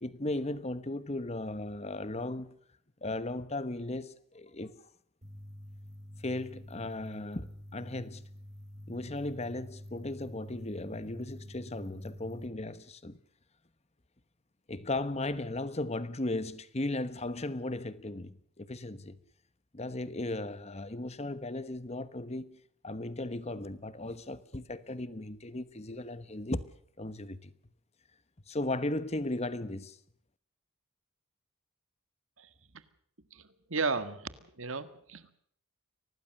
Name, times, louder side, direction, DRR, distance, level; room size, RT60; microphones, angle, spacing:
voice 1, 0.0-2.6 3.0-4.8 6.2-8.3 8.9-13.2 14.7-19.2 19.7-26.7 27.0-27.5 28.5-30.0, left 2 dB, 30° left, 1.1 m, -36 dB
sound 1, 5.2-12.5, equal, 35° right, 3.2 m, -47 dB
voice 2, 33.3-34.3 34.6-35.3, right 4 dB, 65° right, 1.7 m, -34 dB
24.5 x 18.5 x 6.6 m
head